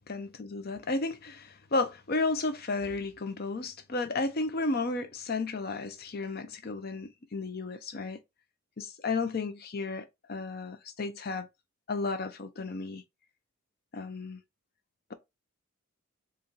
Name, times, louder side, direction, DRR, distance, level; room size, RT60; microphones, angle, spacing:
voice 1, 0.1-8.2 8.8-11.5 11.9-13.0 13.9-14.4, left 3 dB, 45° left, 0.6 m, -33 dB
4.3 x 2.5 x 3.8 m
head